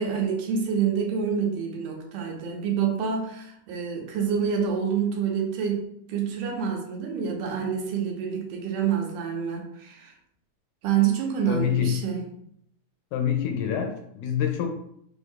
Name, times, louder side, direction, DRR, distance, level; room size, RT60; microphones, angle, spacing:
voice 1, 0.0-10.1 10.8-12.2, right 7 dB, 85° right, 1 dB, 2.3 m, -27 dB
voice 2, 11.5-12.0 13.1-14.7, left 8 dB, 80° left, 4 dB, 1.9 m, -26 dB
6.1 x 2.7 x 2.4 m, 0.71 s
omnidirectional pair, 3.7 m